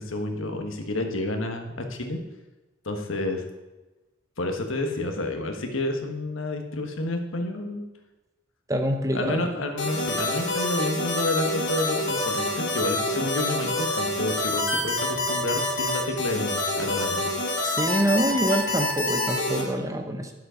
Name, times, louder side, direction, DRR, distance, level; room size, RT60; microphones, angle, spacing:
voice 1, 0.0-2.2 2.8-3.4 4.4-7.8 9.1-17.3, left 2 dB, 80° left, 4 dB, 1.4 m, -29 dB
voice 2, 8.7-9.5 17.6-20.3, right 1 dB, 15° right, 5 dB, 1.0 m, -25 dB
sound 1, 9.8-19.6, left 1 dB, 60° left, 2.7 m, -27 dB
10.5 x 7.6 x 5.1 m, 1.1 s
head